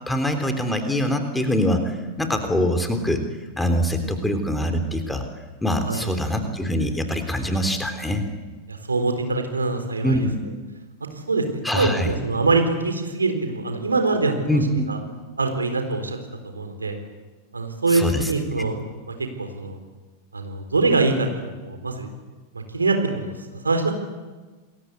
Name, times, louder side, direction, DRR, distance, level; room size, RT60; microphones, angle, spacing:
voice 1, 0.1-3.2 3.6-5.2 5.6-8.2 10.0-10.5 11.6-12.2 14.5-14.9 17.9-18.3 18.7-18.8, equal, 5° left, 6 dB, 3.6 m, -24 dB
voice 2, 8.7-10.3 11.3-14.6 14.9-15.0 15.4-16.2 16.5-17.0 17.5-18.8 19.4-19.8 20.3-22.1 22.5-23.9, right 3 dB, 75° right, 6 dB, 3.9 m, -24 dB
28.0 x 22.0 x 8.3 m, 1.3 s
figure-of-eight pair, 90°, 0 cm